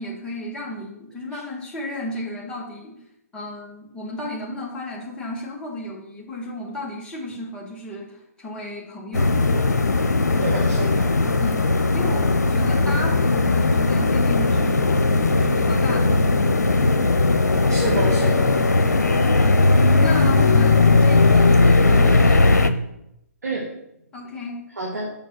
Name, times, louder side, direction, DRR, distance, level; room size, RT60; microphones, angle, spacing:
voice 1, 0.0-2.9 3.3-9.3 11.4-15.1 15.3-16.6 20.0-22.5 24.1-24.6, left 1 dB, 10° left, -4 dB, 1.8 m, -33 dB
sound 1, 9.1-22.7, left 3 dB, 90° left, 0.8 m, -18 dB
voice 2, 10.4-11.1 17.7-18.5 23.4-23.7 24.8-25.1, right 2 dB, 80° right, -2 dB, 2.2 m, -28 dB
7.3 x 5.4 x 6.3 m, 0.80 s
hypercardioid pair, 140°, 9 cm